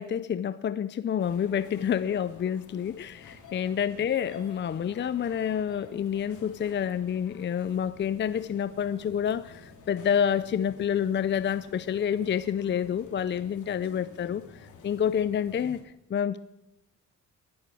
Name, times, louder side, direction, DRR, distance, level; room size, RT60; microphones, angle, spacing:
voice 1, 0.0-16.4, left 8 dB, 35° left, 15 dB, 0.6 m, -28 dB
sound 1, 1.2-15.8, left 4 dB, 75° left, 3.2 m, -51 dB
19.0 x 12.0 x 6.4 m, 0.89 s
cardioid pair, 90°, 30 cm